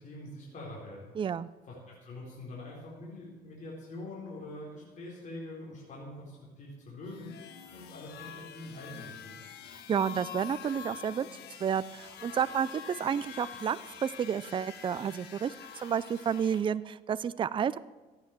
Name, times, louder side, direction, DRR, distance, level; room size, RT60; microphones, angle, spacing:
voice 1, 0.0-1.1 1.7-7.4 7.7-9.4, left 1 dB, 45° left, -4 dB, 4.2 m, -44 dB
voice 2, 1.2-1.5 9.9-11.3 11.6-17.8, right 8 dB, 30° right, 16 dB, 0.4 m, -31 dB
sound 1, 7.0-16.6, left 8 dB, 75° left, 1.4 m, -46 dB
14.5 x 9.4 x 7.4 m, 1.2 s
cardioid pair, 110°, 17 cm